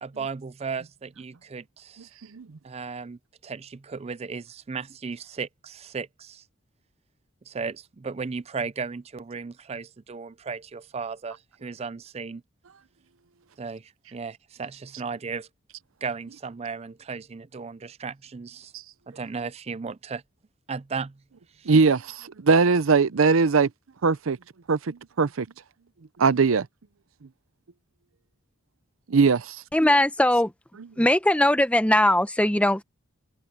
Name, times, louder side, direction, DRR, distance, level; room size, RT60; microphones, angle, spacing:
voice 1, 0.0-2.1 2.6-6.4 7.5-12.4 13.6-15.5 16.0-18.7 19.1-20.2 20.7-21.2 21.6-21.7, right 5 dB, 30° right, 0.4 m, -35 dB
voice 2, 21.7-23.7 24.0-24.4 24.7-25.5 26.2-26.7 29.1-29.6, right 4 dB, 85° right, 0.6 m, -20 dB
voice 3, 29.7-30.5 31.0-32.8, left 1 dB, 5° left, 0.9 m, -20 dB
head